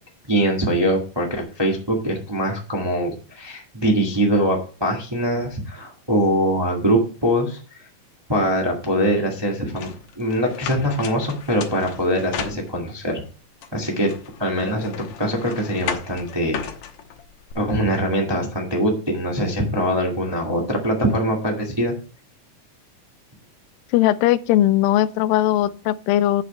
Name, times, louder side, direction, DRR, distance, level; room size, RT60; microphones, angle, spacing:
voice 1, 0.3-7.6 8.3-13.2 13.7-14.1 14.4-16.6 17.5-21.9, equal, 15° right, 0.9 m, -22 dB
sound 1, 9.8-13.1 13.6-17.5, left 8 dB, 65° left, 2.0 m, -35 dB
voice 2, 23.9-26.4, left 13 dB, 85° left, 2.3 m, -19 dB
8.4 x 7.1 x 4.3 m
omnidirectional pair, 4.0 m